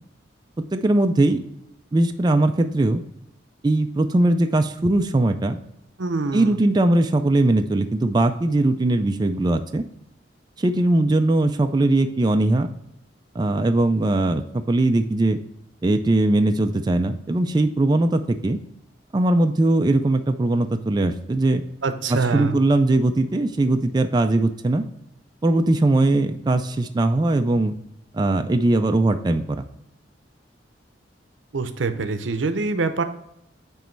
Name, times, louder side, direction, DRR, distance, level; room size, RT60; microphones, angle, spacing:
voice 1, 0.6-1.4 1.9-3.0 3.6-5.6 6.3-9.8 10.6-12.7 13.3-15.4 15.8-18.6 19.1-21.6 22.1-24.8 25.4-27.7 28.1-29.6, right 2 dB, 25° right, 7 dB, 0.3 m, -20 dB
voice 2, 6.0-6.6 21.8-22.5 31.5-33.0, right 4 dB, 85° right, 9 dB, 0.7 m, -24 dB
9.0 x 3.1 x 4.5 m, 0.81 s
head